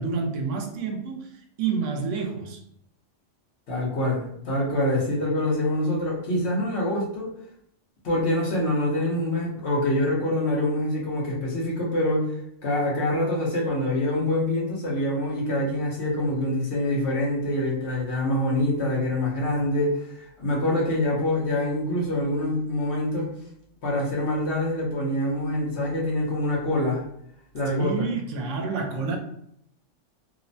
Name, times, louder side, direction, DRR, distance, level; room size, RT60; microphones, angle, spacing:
voice 1, 0.0-1.3 1.6-2.6 27.7-29.2, right 5 dB, 80° right, 0.9 m, -29 dB
voice 2, 3.7-7.3 8.0-12.3 12.6-23.3 23.8-27.0 27.5-28.1, left 1 dB, 65° left, 1.1 m, -25 dB
3.0 x 2.1 x 2.6 m
omnidirectional pair, 1.2 m